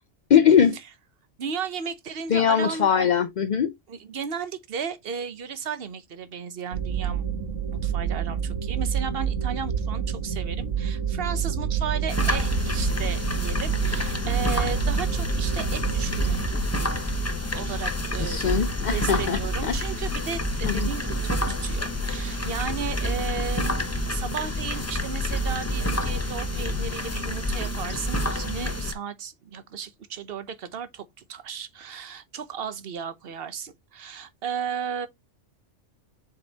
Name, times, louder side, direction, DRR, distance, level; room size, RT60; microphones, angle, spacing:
voice 1, 0.3-0.8 2.3-3.7 18.2-19.8 20.6-20.9, left 8 dB, 55° left, 0.5 m, -21 dB
voice 2, 1.4-3.1 3.9-7.2 7.8-16.4 17.5-23.8 24.1-35.1, right 6 dB, 55° right, 1.1 m, -34 dB
sound 1, 6.7-16.5, right 7 dB, 80° right, 1.7 m, -28 dB
sound 2, 12.1-28.9, left 1 dB, 15° left, 0.8 m, -28 dB
7.1 x 5.1 x 2.8 m
omnidirectional pair, 1.2 m